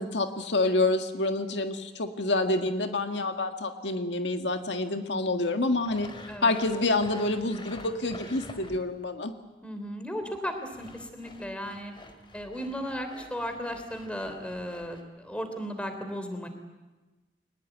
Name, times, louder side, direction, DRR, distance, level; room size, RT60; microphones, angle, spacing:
voice 1, 0.0-6.1 6.4-9.3, left 2 dB, 85° left, 6 dB, 1.8 m, -27 dB
Sawing, 5.8-9.0 10.5-15.0, left 1 dB, 30° left, 2.5 m, -48 dB
voice 2, 9.6-11.9 12.3-16.5, equal, 5° left, 7 dB, 3.4 m, -35 dB
22.5 x 20.0 x 9.3 m, 1.2 s
head